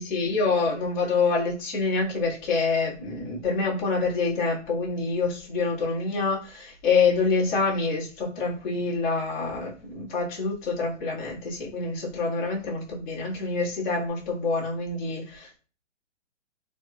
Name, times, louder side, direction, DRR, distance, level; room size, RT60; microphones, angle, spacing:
voice 1, 0.0-15.6, left 4 dB, 40° left, -5 dB, 1.6 m, -26 dB
4.0 x 3.2 x 2.3 m, 0.37 s
hypercardioid pair, 160°, 38 cm